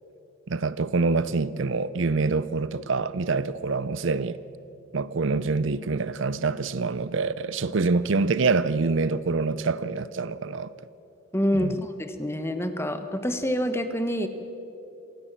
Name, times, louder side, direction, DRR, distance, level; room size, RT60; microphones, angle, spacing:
voice 1, 0.5-4.4 4.9-10.7 11.5-11.8, right 4 dB, 60° right, 0.6 m, -26 dB
voice 2, 11.3-14.3, equal, 10° left, 1.2 m, -27 dB
27.0 x 17.0 x 7.5 m
head